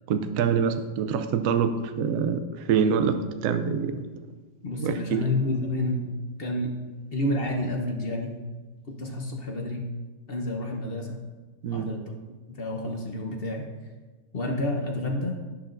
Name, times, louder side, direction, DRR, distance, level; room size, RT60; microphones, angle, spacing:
voice 1, 0.1-4.0 4.8-5.2 11.6-11.9, right 7 dB, 90° right, 9 dB, 0.7 m, -25 dB
voice 2, 4.6-6.0 6.4-6.7 7.1-8.4 9.0-9.8 10.3-11.2 11.7-12.0 12.5-13.7 14.3-15.4, left 1 dB, 50° left, 1 dB, 0.7 m, -29 dB
10.5 x 9.9 x 2.6 m, 1.3 s
omnidirectional pair, 2.1 m